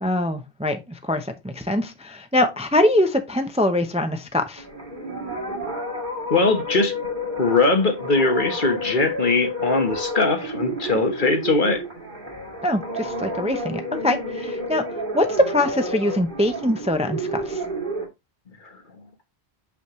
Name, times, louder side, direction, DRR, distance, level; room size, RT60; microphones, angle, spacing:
voice 1, 0.0-4.6 12.6-14.8 15.1-17.6, left 1 dB, 5° right, 0.6 m, -23 dB
sound 1, 4.6-18.1, equal, 50° right, 2.2 m, -30 dB
voice 2, 6.3-6.9 7.4-11.8, left 3 dB, 50° left, 1.3 m, -21 dB
6.3 x 5.8 x 3.0 m
omnidirectional pair, 1.1 m